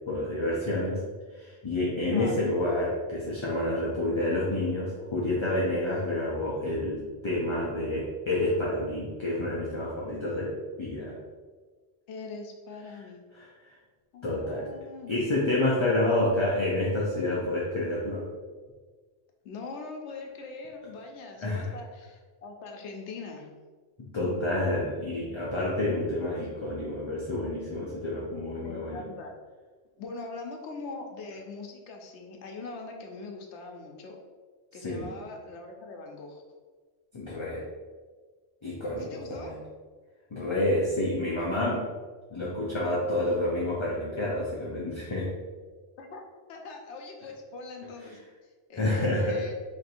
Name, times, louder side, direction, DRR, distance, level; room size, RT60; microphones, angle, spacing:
voice 1, 0.1-1.0 1.3-11.2 13.3-13.8 14.2-14.7 15.1-18.2 21.4-21.7 24.0-29.0 34.8-35.1 37.1-37.6 38.6-39.5 40.3-41.9 42.3-45.3 48.7-49.4, left 1 dB, 35° left, -5 dB, 0.5 m, -29 dB
voice 2, 12.1-13.3 14.1-15.2 15.9-16.4 19.4-23.5 28.6-29.3 30.0-34.2 34.7-36.4 39.0-39.5 46.0-48.2 48.7-49.5, left 3 dB, 80° left, 2 dB, 0.9 m, -42 dB
3.1 x 2.6 x 4.1 m, 1.4 s
omnidirectional pair, 1.2 m